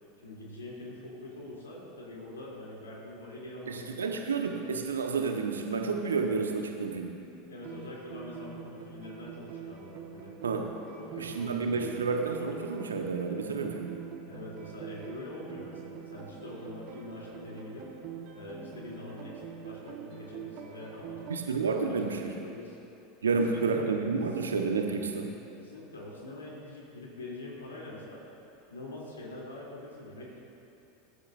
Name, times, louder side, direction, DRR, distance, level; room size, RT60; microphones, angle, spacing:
voice 1, 0.2-4.1 7.4-10.4 11.0-12.1 13.6-13.7 14.2-17.9 18.3-21.3 21.7-22.8 23.2-23.9 25.6-28.2 28.7-30.4, left 1 dB, 75° left, -4 dB, 3.3 m, -44 dB
voice 2, 3.7-7.2 10.4-10.7 11.2-13.9 21.3-22.3 23.2-25.3, right 4 dB, 75° right, 3 dB, 1.3 m, -30 dB
sound 1, 7.6-21.4, right 7 dB, 50° right, 1.5 m, -45 dB
21.5 x 11.5 x 2.7 m, 2.8 s
figure-of-eight pair, 80°, 0 cm